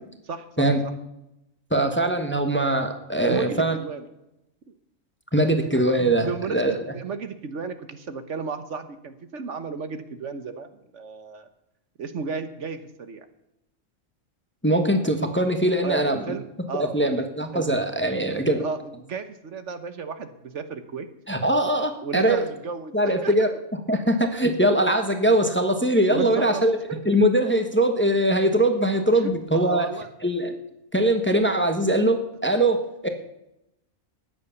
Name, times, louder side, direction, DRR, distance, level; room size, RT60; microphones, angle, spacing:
voice 1, 0.3-0.9 3.2-4.0 5.4-5.5 5.9-11.5 12.0-13.3 15.8-17.2 17.5-17.6 18.6-21.1 22.0-23.3 26.1-27.0 29.2-30.1, right 5 dB, 65° right, 10 dB, 1.3 m, -33 dB
voice 2, 1.7-3.7 5.3-6.8 14.6-16.2 16.7-18.6 21.3-22.4 22.9-23.5 23.9-26.8 27.0-29.9 30.2-30.5 30.9-33.1, right 1 dB, 10° left, 6 dB, 1.2 m, -22 dB
14.0 x 9.7 x 7.1 m, 0.87 s
omnidirectional pair, 1.4 m